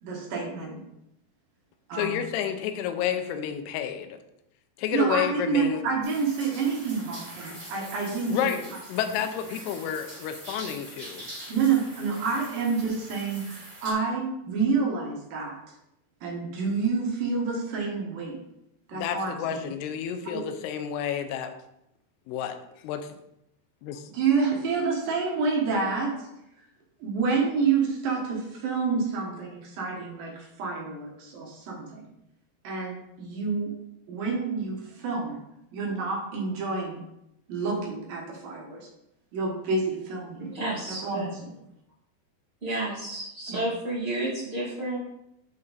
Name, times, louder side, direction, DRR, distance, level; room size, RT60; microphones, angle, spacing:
voice 1, 0.0-0.8 1.9-2.2 4.9-8.5 11.5-15.6 16.2-18.4 18.9-19.7 20.3-20.5 24.1-26.1 27.0-32.1 32.6-33.7 34.1-35.4 35.7-37.0 37.5-38.9 39.3-40.4 40.9-41.5 43.5-43.6, right 5 dB, 65° right, -1 dB, 2.6 m, -28 dB
voice 2, 1.9-4.2 4.8-5.8 8.3-8.6 8.9-11.3 18.9-21.5 22.3-22.6 22.8-23.1 23.8-24.0, left 9 dB, 80° left, 8 dB, 2.5 m, -30 dB
sound 1, 6.0-13.9, right 1 dB, 15° right, 1.8 m, -43 dB
voice 3, 40.4-41.3 42.6-45.0, right 2 dB, 45° right, -9 dB, 0.7 m, -31 dB
6.9 x 5.4 x 4.0 m, 0.82 s
omnidirectional pair, 5.0 m